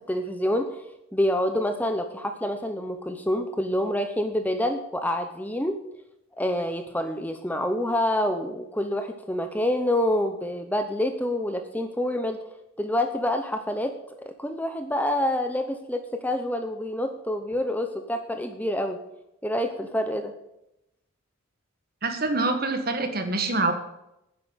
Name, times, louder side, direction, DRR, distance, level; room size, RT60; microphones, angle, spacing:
voice 1, 0.1-0.8 1.1-5.8 6.4-12.4 12.8-13.9 14.2-19.0 19.4-20.3, left 1 dB, 10° left, 6 dB, 0.8 m, -27 dB
voice 2, 22.0-23.7, right 3 dB, 45° right, 7 dB, 1.6 m, -25 dB
10.0 x 7.9 x 7.9 m, 0.85 s
head